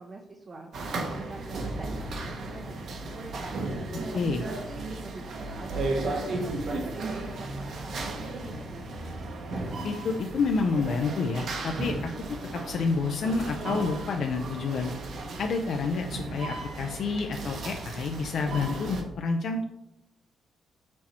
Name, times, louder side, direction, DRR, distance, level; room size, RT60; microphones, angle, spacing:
voice 1, 0.0-3.6 4.1-9.1, right 3 dB, 30° right, 2 dB, 0.6 m, -45 dB
sound 1, 0.7-19.0, right 2 dB, 55° right, 1.1 m, -35 dB
voice 2, 9.8-12.1 12.5-14.9 15.4-19.7, left 4 dB, 60° left, 3 dB, 0.5 m, -29 dB
sound 2, 16.3-19.0, left 1 dB, 35° left, 0.9 m, -57 dB
6.3 x 4.3 x 4.3 m, 0.87 s
cardioid pair, 150°, 0 cm